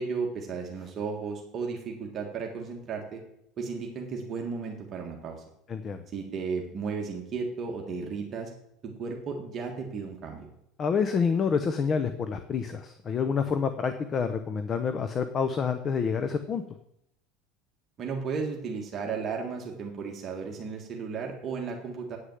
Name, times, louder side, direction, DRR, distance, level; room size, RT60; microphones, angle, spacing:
voice 1, 0.0-3.2 3.6-5.4 6.1-8.5 8.8-10.5 18.0-22.2, right 5 dB, 35° right, 1 dB, 1.7 m, -34 dB
voice 2, 5.7-6.0 10.8-16.6, left 6 dB, 30° left, 10 dB, 0.7 m, -28 dB
9.1 x 6.6 x 7.9 m, 0.78 s
supercardioid pair, 130°, 0 cm